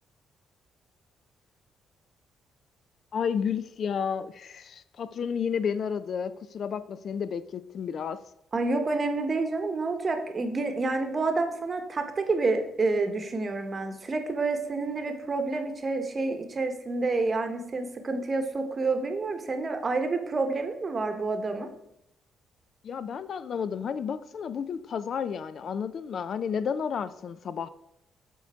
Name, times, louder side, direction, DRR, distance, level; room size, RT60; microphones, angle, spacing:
voice 1, 3.1-8.2 22.8-27.7, left 7 dB, 60° left, 14 dB, 0.3 m, -31 dB
voice 2, 8.5-21.7, right 3 dB, 35° right, 6 dB, 0.9 m, -28 dB
7.3 x 3.9 x 3.4 m, 0.80 s
cardioid pair, 90°, 0 cm